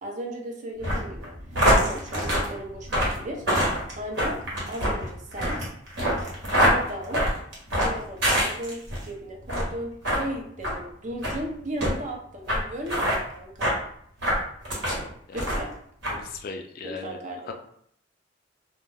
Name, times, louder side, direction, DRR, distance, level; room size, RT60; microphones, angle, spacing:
voice 1, 0.0-1.3 1.7-3.4 4.0-4.4 4.7-5.6 6.6-7.2 7.8-13.7 15.3-15.7 16.8-17.5, right 1 dB, 40° right, 1 dB, 0.5 m, -35 dB
sound 1, 0.8-9.0 9.4-9.7 10.0-10.2 10.6-10.8 11.2-11.4 11.8-11.9 12.5-12.6 12.9-13.2 13.6-13.8 14.2-15.0 15.3-15.7 16.0-16.2, equal, 65° right, 1.0 m, -24 dB
voice 2, 16.1-17.2 17.5-17.6, left 4 dB, 50° left, 4 dB, 0.3 m, -37 dB
2.2 x 2.2 x 3.3 m, 0.66 s
head